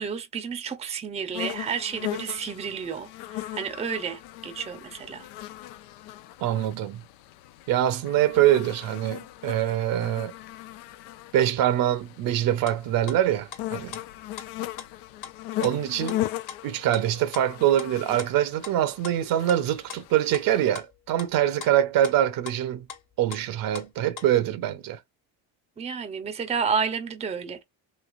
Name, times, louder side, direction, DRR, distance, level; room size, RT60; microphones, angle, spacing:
voice 1, 0.0-5.3 25.8-27.6, right 6 dB, 15° right, 0.6 m, -31 dB
sound 1, 1.3-20.7, left 15 dB, 85° left, 0.5 m, -38 dB
voice 2, 6.4-7.0 7.7-10.3 11.3-13.9 15.6-16.2 16.6-22.9 23.2-25.0, right 12 dB, 65° right, 0.7 m, -24 dB
sound 2, 12.7-12.8 13.1-13.6 13.9-14.0 14.4-14.5 14.7-14.9 15.2-15.3 15.6-15.8 16.1-16.2 16.5-17.0 17.3-17.5 17.8-17.9 18.2-18.3 18.6-18.8 19.0-21.7 22.0-22.2 22.5-22.6 22.9-23.0 23.3-23.9 24.2-24.3, left 7 dB, 55° left, 1.3 m, -40 dB
3.2 x 2.9 x 2.4 m
supercardioid pair, 95°, 38 cm